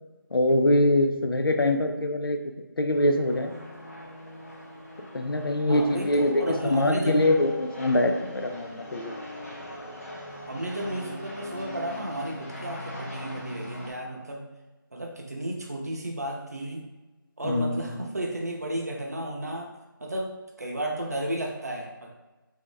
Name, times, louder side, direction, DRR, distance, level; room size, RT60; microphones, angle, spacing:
voice 1, 0.3-2.4 2.8-3.5 5.1-9.2 17.4-18.0, left 1 dB, 80° left, 5 dB, 0.5 m, -24 dB
sound 1, 2.9-13.9, left 1 dB, 40° left, 0.7 m, -41 dB
voice 2, 5.7-7.2 10.5-14.5 14.9-16.9 17.4-19.7 20.0-22.1, right 1 dB, 45° right, 0 dB, 0.6 m, -33 dB
3.5 x 2.7 x 3.2 m, 1.1 s
figure-of-eight pair, 180°, 12 cm